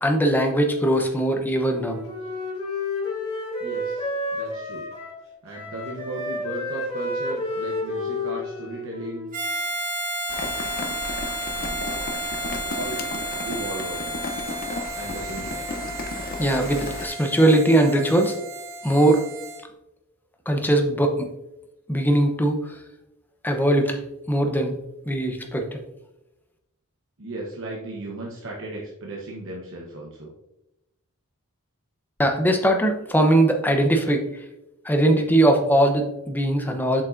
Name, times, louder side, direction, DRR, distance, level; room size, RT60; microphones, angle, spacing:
voice 1, 0.0-2.0 16.4-18.4 18.8-19.2 20.5-21.3 21.9-22.8 23.4-24.0 24.3-24.7 25.1-25.8 32.2-34.4 34.8-37.0, right 1 dB, 10° left, 4 dB, 0.8 m, -20 dB
Wind instrument woodwind instrument, 1.6-5.2 5.5-9.4, left 2 dB, 25° left, 2.0 m, -31 dB
voice 2, 3.6-4.9 5.4-9.3 12.5-13.0 13.4-14.2 14.9-15.7 27.2-30.3, right 1 dB, 60° right, -2 dB, 1.0 m, -36 dB
Harmonica, 9.3-19.6, right 1 dB, 40° right, 2.0 m, -32 dB
Rain, 10.3-17.1, left 3 dB, 45° left, 0.7 m, -33 dB
7.1 x 5.3 x 2.6 m, 0.91 s
head